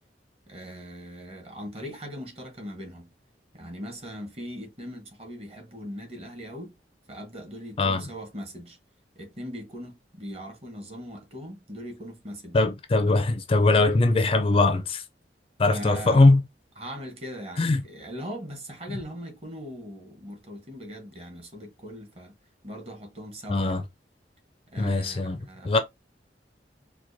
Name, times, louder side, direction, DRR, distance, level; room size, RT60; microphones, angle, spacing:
voice 1, 0.5-3.1 3.5-6.8 7.1-8.8 9.2-12.6 15.7-16.2 16.8-22.4 22.6-23.8 24.7-25.8, equal, 35° right, 1.0 m, -40 dB
voice 2, 12.5-15.0 15.6-16.4 17.6-17.8 23.5-23.8 24.8-25.4 25.6-25.8, left 2 dB, 30° left, 0.4 m, -21 dB
4.4 x 2.1 x 2.6 m
head